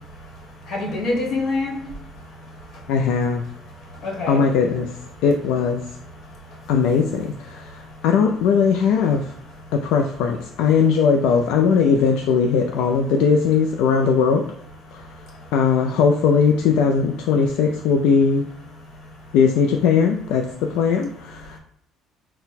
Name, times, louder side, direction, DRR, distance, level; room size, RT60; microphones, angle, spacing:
voice 1, 0.7-1.8 4.0-4.4, left 2 dB, 50° left, -1 dB, 1.2 m, -25 dB
voice 2, 2.9-3.4 4.3-4.9 5.2-5.8 6.7-9.3 9.7-14.4 14.9-15.0 15.5-18.4 19.3-21.6, left 6 dB, 80° left, 3 dB, 0.3 m, -19 dB
4.1 x 2.1 x 4.1 m, 0.70 s
cardioid pair, 140°, 0 cm